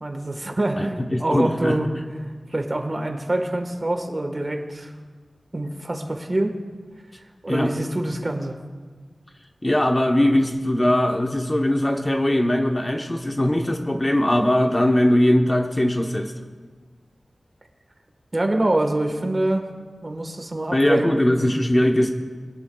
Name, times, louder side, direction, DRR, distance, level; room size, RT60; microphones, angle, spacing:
voice 1, 0.0-1.9 2.5-4.9 5.5-6.6 7.4-8.6 18.3-19.7 20.0-21.2, right 1 dB, 35° right, 4 dB, 1.4 m, -25 dB
voice 2, 0.8-1.8 7.5-7.7 9.6-16.3 20.7-22.1, left 1 dB, 25° left, 3 dB, 1.0 m, -20 dB
22.5 x 11.5 x 2.3 m, 1.5 s
wide cardioid pair, 90°, 0 cm